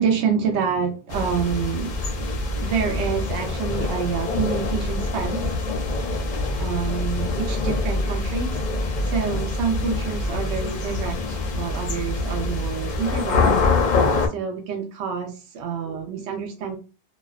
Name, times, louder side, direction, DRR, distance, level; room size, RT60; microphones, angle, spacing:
voice 1, 0.0-2.0 2.6-5.5 6.5-8.6 8.8-13.4 14.3-16.8, right 6 dB, 85° right, 2 dB, 0.9 m, -27 dB
sound 1, 1.1-14.3, left 3 dB, 55° left, 0.5 m, -25 dB
2.4 x 2.2 x 2.3 m, 0.31 s
omnidirectional pair, 1.1 m